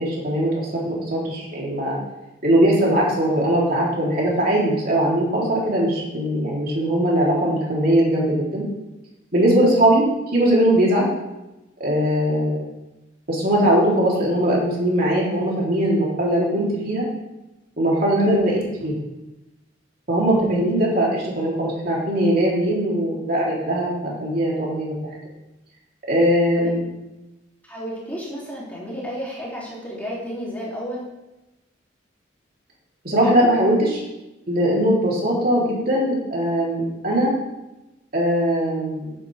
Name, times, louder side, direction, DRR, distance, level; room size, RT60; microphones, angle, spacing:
voice 1, 0.0-2.0 2.4-8.6 9.3-10.1 10.3-11.1 11.8-12.7 13.3-17.1 17.8-18.9 20.1-24.9 26.1-26.8 33.0-34.0 34.5-37.3 38.1-39.1, right 1 dB, 50° right, -5 dB, 3.7 m, -20 dB
voice 2, 27.7-31.0, equal, 10° left, -7 dB, 3.4 m, -32 dB
15.0 x 8.8 x 3.6 m, 0.98 s
head